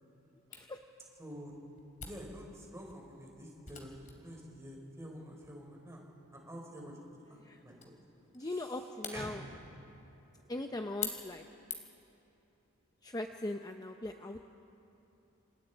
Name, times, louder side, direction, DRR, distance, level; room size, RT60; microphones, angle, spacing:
Camera, 0.5-12.1, left 6 dB, 35° left, 2.8 m, -48 dB
voice 1, 1.2-1.5 2.0-6.1 6.3-6.9 7.3-7.4 7.6-7.7 8.4-9.4, equal, 15° right, -1 dB, 3.9 m, -48 dB
voice 2, 8.3-9.4 10.5-11.4 13.0-14.4, left 1 dB, 15° left, 5 dB, 0.6 m, -40 dB
28.0 x 27.5 x 4.5 m, 2.9 s
head